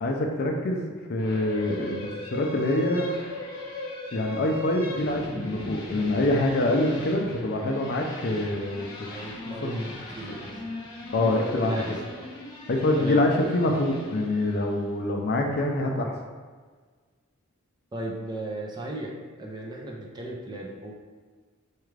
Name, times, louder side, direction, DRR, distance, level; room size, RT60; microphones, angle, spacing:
voice 1, 0.0-3.1 4.1-9.1 9.5-9.8 11.1-11.8 12.7-16.1, left 1 dB, 50° left, 2 dB, 0.4 m, -25 dB
sound 1, 1.2-14.8, left 2 dB, 20° left, 0.9 m, -38 dB
voice 2, 9.1-10.8 11.2-12.3 12.9-13.2 17.9-19.1 19.4-20.9, right 1 dB, 20° right, -2 dB, 0.5 m, -36 dB
4.4 x 2.4 x 3.2 m, 1.5 s
head